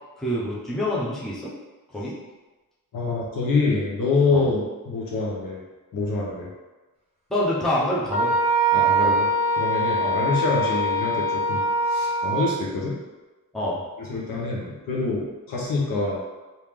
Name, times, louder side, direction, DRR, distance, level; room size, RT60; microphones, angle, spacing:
voice 1, 0.2-1.5 1.9-2.1 4.3-4.5 7.3-8.3 10.0-10.2 13.5-13.8, left 1 dB, ahead, -6 dB, 0.6 m, -26 dB
voice 2, 2.9-5.6 5.9-6.5 8.7-9.3 9.6-13.0 14.0-16.2, left 3 dB, 70° left, -3 dB, 1.0 m, -26 dB
Wind instrument woodwind instrument, 8.1-12.5, right 1 dB, 15° right, 1.0 m, -22 dB
3.1 x 2.8 x 3.6 m, 1.2 s
wide cardioid pair, 160°, 35 cm